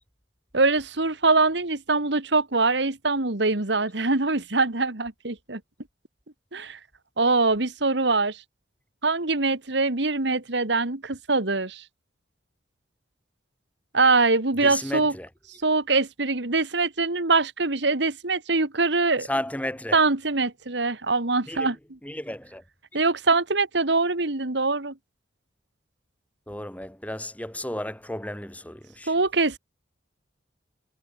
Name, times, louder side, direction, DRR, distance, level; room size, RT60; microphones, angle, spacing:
voice 1, 0.5-5.6 6.5-6.8 7.2-8.4 9.0-11.8 13.9-15.1 15.6-19.3 19.9-21.8 22.9-24.9 29.1-29.6, right 3 dB, 65° right, 2.0 m, -23 dB
voice 2, 14.6-15.3 19.2-20.0 21.5-21.7 22.0-22.6 26.5-29.1, left 1 dB, 10° left, 3.4 m, -33 dB
head